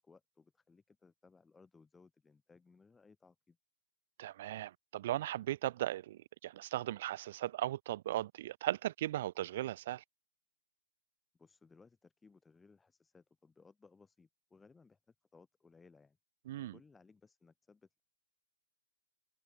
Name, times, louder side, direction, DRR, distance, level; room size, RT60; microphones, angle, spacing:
voice 1, 0.0-3.6 11.4-15.0 15.3-16.2 16.7-18.0, left 4 dB, 5° left, 7.4 m, -63 dB
voice 2, 4.2-10.0 16.5-16.7, right 14 dB, 45° right, 1.3 m, -37 dB
hypercardioid pair, 155°, 0 cm